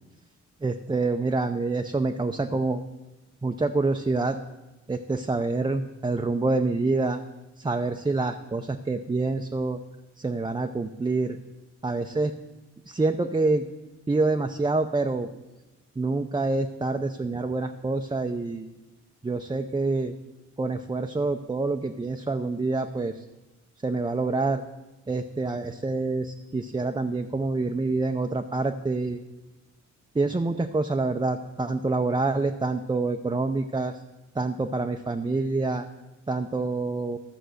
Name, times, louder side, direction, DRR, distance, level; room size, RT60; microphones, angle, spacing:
voice 1, 0.6-2.8 3.4-4.4 4.9-7.2 7.6-9.8 10.2-11.4 11.8-12.3 12.9-13.7 14.1-15.3 16.0-18.7 19.2-20.1 20.6-23.2 23.8-24.6 25.1-29.2 30.1-34.0 34.4-35.9 36.3-37.2, right 3 dB, 15° right, 5 dB, 0.5 m, -26 dB
12.5 x 6.8 x 6.4 m, 1.1 s
wide cardioid pair, 100°, 29 cm